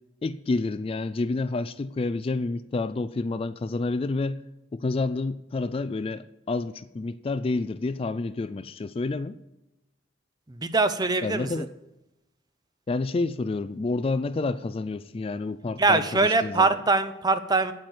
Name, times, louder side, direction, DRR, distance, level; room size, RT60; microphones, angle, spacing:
voice 1, 0.2-4.4 4.7-9.4 11.2-11.7 12.9-16.8, left 3 dB, 30° left, 0.3 m, -29 dB
voice 2, 10.5-11.7 15.8-17.7, right 3 dB, 20° right, 0.7 m, -23 dB
9.3 x 8.7 x 8.0 m
head